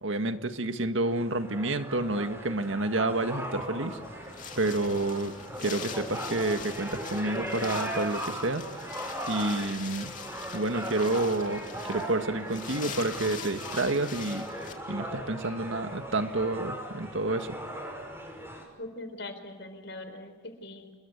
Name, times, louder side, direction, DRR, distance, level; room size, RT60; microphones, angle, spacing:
voice 1, 0.0-4.0 4.6-5.3 5.6-8.9 9.3-10.1 10.5-11.6 11.9-14.5 14.9-17.6, right 2 dB, 75° right, 8 dB, 1.8 m, -29 dB
sound 1, 1.0-18.6, right 1 dB, 10° right, 6.0 m, -38 dB
Wind, 3.5-14.7, left 6 dB, 40° left, 2.9 m, -43 dB
voice 2, 18.8-20.9, left 2 dB, 60° left, 8 dB, 4.6 m, -41 dB
29.5 x 23.0 x 8.3 m, 1.3 s
head